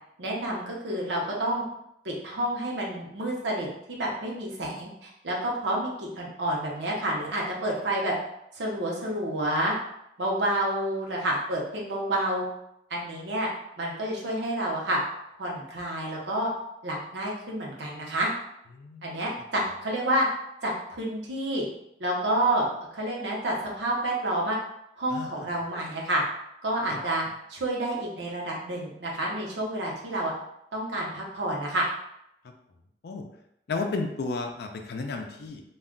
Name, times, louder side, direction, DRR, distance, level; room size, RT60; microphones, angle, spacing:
voice 1, 0.2-1.6 2.0-8.2 8.5-9.7 10.2-12.4 12.9-13.5 13.8-15.0 15.4-16.5 16.8-18.3 19.0-20.3 20.6-21.6 22.0-22.7 22.9-24.6 25.0-26.2 26.6-30.3 30.7-31.9, right 1 dB, 75° right, -3 dB, 0.7 m, -29 dB
voice 2, 18.7-19.1 25.1-25.3 26.9-27.0 33.0-33.2 33.7-35.6, left 3 dB, 65° left, 4 dB, 0.4 m, -32 dB
2.3 x 2.2 x 3.6 m, 0.79 s
head